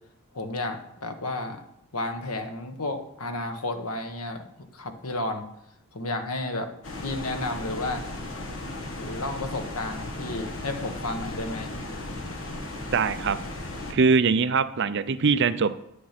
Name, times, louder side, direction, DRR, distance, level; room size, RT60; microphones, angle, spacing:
voice 1, 0.3-1.7 1.9-4.5 4.7-5.4 5.9-6.7 7.0-8.0 9.0-11.7, left 2 dB, 90° left, 6 dB, 1.3 m, -32 dB
sound 1, 6.8-13.9, left 2 dB, 60° left, 1.5 m, -36 dB
voice 2, 12.9-13.4 13.9-15.8, right 5 dB, 55° right, 13 dB, 0.5 m, -22 dB
10.0 x 7.5 x 5.9 m, 0.77 s
head